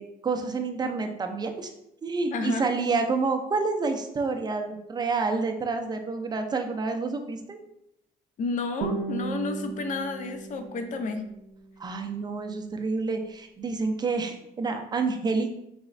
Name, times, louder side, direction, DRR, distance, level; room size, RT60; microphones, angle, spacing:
voice 1, 0.0-1.7 2.0-7.6 11.8-15.5, right 4 dB, 25° right, 5 dB, 0.4 m, -28 dB
voice 2, 2.3-2.7 8.4-11.2, left 3 dB, 50° left, 7 dB, 0.5 m, -31 dB
Guitar, 8.8-11.8, right 4 dB, 80° right, 0.7 m, -35 dB
4.1 x 3.0 x 2.5 m, 0.83 s
cardioid pair, 110°, 17 cm